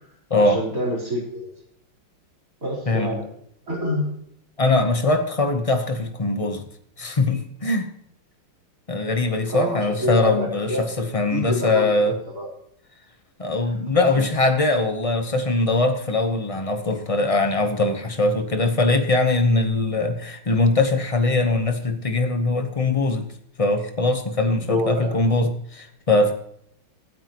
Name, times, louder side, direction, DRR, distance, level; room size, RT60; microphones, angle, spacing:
voice 1, 0.3-1.5 2.6-3.3 3.7-4.1 9.5-12.5 14.1-14.3 24.7-25.4, equal, 40° right, -2 dB, 4.4 m, -28 dB
voice 2, 4.6-6.6 7.0-7.9 8.9-12.1 13.4-23.3 23.6-26.3, left 2 dB, 40° left, 6 dB, 0.5 m, -21 dB
24.5 x 9.2 x 3.0 m, 0.71 s
omnidirectional pair, 2.3 m